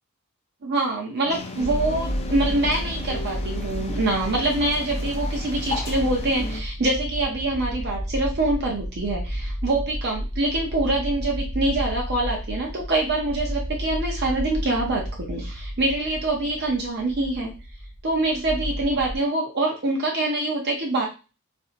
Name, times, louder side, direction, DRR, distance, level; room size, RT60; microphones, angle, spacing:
sound 1, 0.6-6.6, left 2 dB, 70° left, 0.7 m, -40 dB
voice 1, 0.6-17.5 18.0-21.1, right 2 dB, 50° right, -1 dB, 0.6 m, -25 dB
sound 2, 1.3-6.6, left 4 dB, 30° left, 0.4 m, -38 dB
sound 3, 1.6-19.2, equal, 30° right, 1.8 m, -31 dB
4.0 x 2.6 x 2.5 m, 0.32 s
head